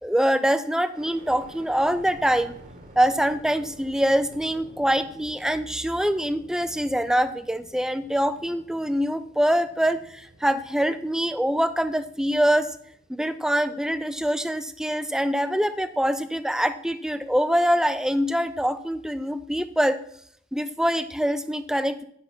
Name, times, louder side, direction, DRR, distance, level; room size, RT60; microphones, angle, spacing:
voice 1, 0.0-2.6 3.0-12.8 13.1-20.0 20.5-22.0, equal, 5° right, 12 dB, 0.4 m, -24 dB
sound 1, 0.9-14.9 15.4-16.2, right 1 dB, 40° right, 1.3 m, -50 dB
10.0 x 5.8 x 5.9 m, 0.70 s
head